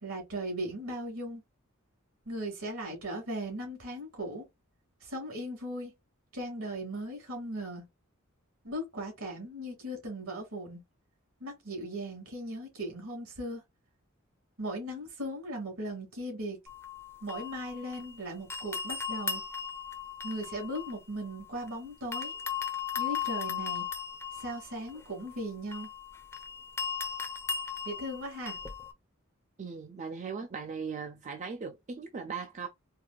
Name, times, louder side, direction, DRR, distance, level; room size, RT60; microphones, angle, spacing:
voice 1, 0.0-1.4 2.3-4.5 5.0-5.9 6.3-7.8 8.6-10.8 11.4-13.6 14.6-16.6 17.2-19.4 20.2-22.3 23.0-23.9 24.3-25.9 27.8-28.6, right 1 dB, 75° right, 2.5 m, -38 dB
sound 1, 16.7-18.2 18.5-21.7 22.1-28.9, left 7 dB, 15° left, 0.6 m, -37 dB
voice 2, 29.6-32.7, right 5 dB, 35° right, 0.4 m, -38 dB
4.6 x 2.5 x 2.2 m
head